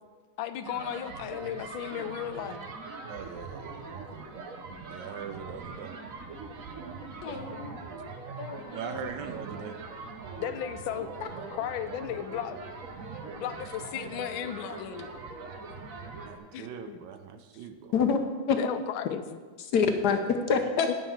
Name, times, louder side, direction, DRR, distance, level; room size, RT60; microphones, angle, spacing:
voice 1, 0.4-2.6 10.4-11.1 11.5-12.6 13.4-15.1 16.5-17.1 18.6-19.2 20.9-21.0, left 10 dB, 85° left, 11 dB, 1.4 m, -35 dB
sound 1, 0.6-16.4, right 4 dB, 50° right, 1.2 m, -42 dB
voice 2, 3.1-4.0 4.9-5.9 8.7-9.8 16.3-17.9, right 7 dB, 70° right, 8 dB, 1.2 m, -41 dB
voice 3, 7.2-7.7 8.4-9.1 17.9-18.2 18.5-18.6 19.6-20.9, left 5 dB, 65° left, 6 dB, 1.1 m, -27 dB
9.4 x 5.6 x 7.1 m, 1.5 s
omnidirectional pair, 2.2 m